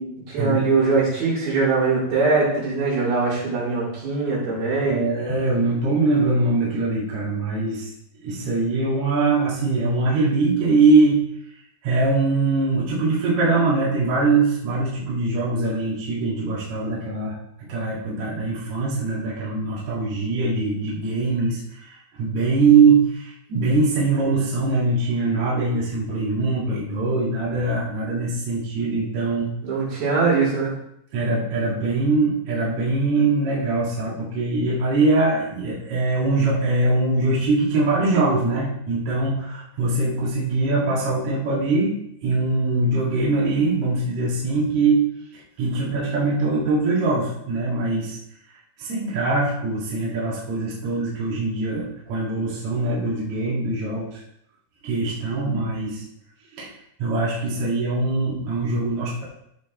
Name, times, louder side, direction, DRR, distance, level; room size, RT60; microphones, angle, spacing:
voice 1, 0.0-5.0 29.6-30.7, right 4 dB, 75° right, -8 dB, 5.5 m, -22 dB
voice 2, 4.8-7.9 8.2-11.2 11.8-17.3 17.7-29.5 31.1-41.9 42.2-45.0 45.6-48.2 48.8-54.2 54.8-56.0 56.6-56.7 57.0-59.2, right 3 dB, 55° right, -6 dB, 3.1 m, -22 dB
14.0 x 6.3 x 3.1 m, 0.75 s
omnidirectional pair, 4.2 m